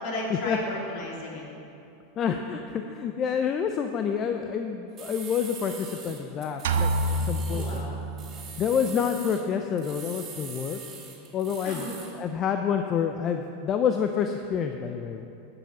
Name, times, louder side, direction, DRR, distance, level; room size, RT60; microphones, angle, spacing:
voice 1, 0.0-1.5 7.5-8.0 11.6-11.9, left 2 dB, 55° left, -3 dB, 2.9 m, -34 dB
voice 2, 2.2-7.8 8.6-10.8 11.3-11.9 12.1-15.3, left 7 dB, 35° left, 6 dB, 0.6 m, -28 dB
sound 1, 5.0-7.9 8.2-9.4 9.8-12.2, right 5 dB, 35° right, 2.3 m, -43 dB
sound 2, 6.6-8.5, right 2 dB, 75° right, 0.7 m, -27 dB
11.5 x 6.9 x 7.2 m, 2.8 s
hypercardioid pair, 105°, 0 cm